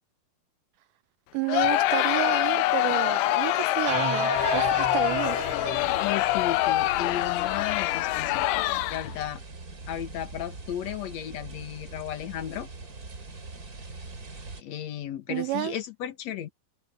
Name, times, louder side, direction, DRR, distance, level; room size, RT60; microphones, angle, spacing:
voice 1, 1.3-5.4 15.3-15.8, right 19 dB, 85° right, 1.9 m, -31 dB
Crowd, 1.5-9.2, left 17 dB, 90° left, 1.8 m, -25 dB
sound 1, 3.9-7.2, right 7 dB, 50° right, 4.2 m, -34 dB
sound 2, 4.3-14.6, right 3 dB, 25° right, 2.8 m, -42 dB
voice 2, 6.0-9.4 9.9-12.7 14.6-16.5, left 11 dB, 60° left, 2.1 m, -34 dB
omnidirectional pair, 4.2 m